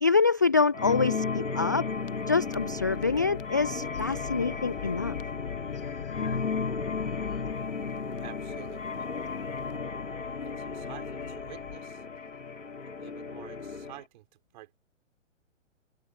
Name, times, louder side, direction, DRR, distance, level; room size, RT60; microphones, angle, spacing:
voice 1, 0.0-1.9 2.3-5.1, left 4 dB, 15° left, 0.4 m, -26 dB
sound 1, 0.7-14.0, left 4 dB, 75° left, 2.9 m, -34 dB
sound 2, 1.9-11.8, left 10 dB, 45° left, 1.3 m, -43 dB
voice 2, 8.2-9.3 10.4-12.0 12.8-14.3 14.5-14.7, right 15 dB, 35° right, 5.1 m, -49 dB
figure-of-eight pair, 120°, 38 cm